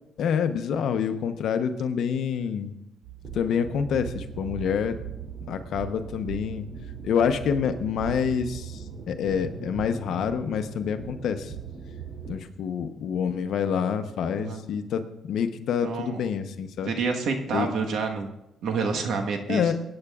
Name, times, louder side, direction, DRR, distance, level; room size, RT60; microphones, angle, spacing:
voice 1, 0.2-2.7 3.3-4.9 5.5-6.7 7.0-11.5 12.3-16.9 17.5-17.7 19.5-19.7, left 7 dB, 75° left, 9 dB, 0.8 m, -27 dB
sound 1, 3.0-12.4, right 7 dB, 55° right, 5.1 m, -39 dB
voice 2, 15.8-16.2 16.8-18.3 18.6-19.6, right 4 dB, 75° right, 3 dB, 1.3 m, -28 dB
22.0 x 8.8 x 2.4 m, 0.88 s
cardioid pair, 90°, 0 cm